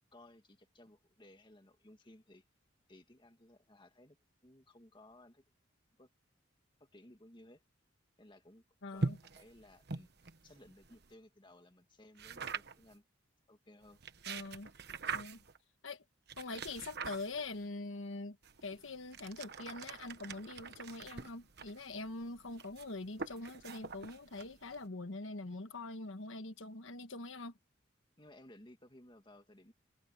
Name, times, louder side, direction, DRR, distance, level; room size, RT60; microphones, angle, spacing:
voice 1, 0.1-2.4 2.9-4.2 4.4-5.4 6.0-6.1 6.8-7.6 8.2-8.6 8.9-13.0 13.5-14.0 15.3-15.4 28.2-29.7, left 1 dB, 25° left, 2.2 m, -59 dB
voice 2, 8.8-9.2 14.3-14.7 15.1-15.4 15.8-16.0 16.4-18.4 18.6-27.5, left 2 dB, 80° left, 1.4 m, -44 dB
sound 1, 9.0-11.1 12.2-12.9 13.9-15.6 16.3-17.6 18.4-24.9, right 4 dB, 55° right, 1.2 m, -44 dB
head